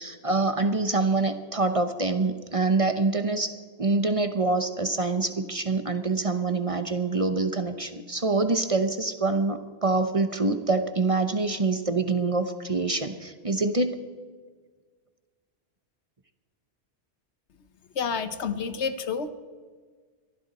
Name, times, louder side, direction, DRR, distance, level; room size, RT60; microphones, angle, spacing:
voice 1, 0.0-14.0, right 3 dB, 35° right, 8 dB, 0.9 m, -25 dB
voice 2, 18.0-19.3, left 6 dB, 75° left, 11 dB, 1.2 m, -29 dB
23.0 x 14.5 x 4.2 m, 1.6 s
omnidirectional pair, 1.2 m